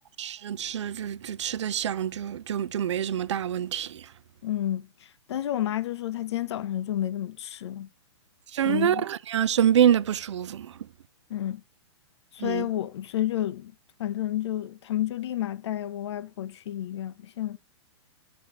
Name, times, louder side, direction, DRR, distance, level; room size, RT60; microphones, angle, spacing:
voice 1, 0.2-4.1 8.5-10.8 12.4-12.7, right 10 dB, 75° right, 0.7 m, -26 dB
voice 2, 4.4-4.9 5.3-7.9 8.6-9.0 11.3-11.6 12.3-13.7 14.0-17.6, left 12 dB, 65° left, 0.7 m, -30 dB
13.0 x 6.3 x 2.9 m
hypercardioid pair, 150°, 15 cm